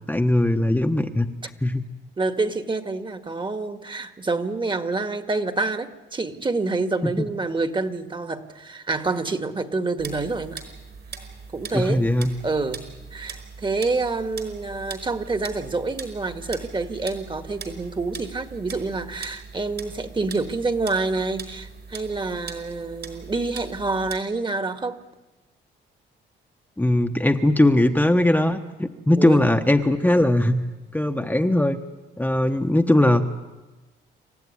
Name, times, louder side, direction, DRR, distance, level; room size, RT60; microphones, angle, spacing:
voice 1, 0.1-1.3 1.6-1.9 7.0-7.1 11.7-12.3 26.8-30.6 30.9-31.8 32.2-33.3, left 1 dB, 10° left, 5 dB, 1.2 m, -20 dB
voice 2, 2.2-10.6 11.5-12.1 12.4-25.0 29.2-29.4, right 3 dB, 25° right, 8 dB, 1.8 m, -27 dB
sound 1, 10.0-24.2, right 5 dB, 55° right, 5.2 m, -40 dB
28.0 x 15.0 x 9.8 m, 1.1 s
cardioid pair, 90°, 20 cm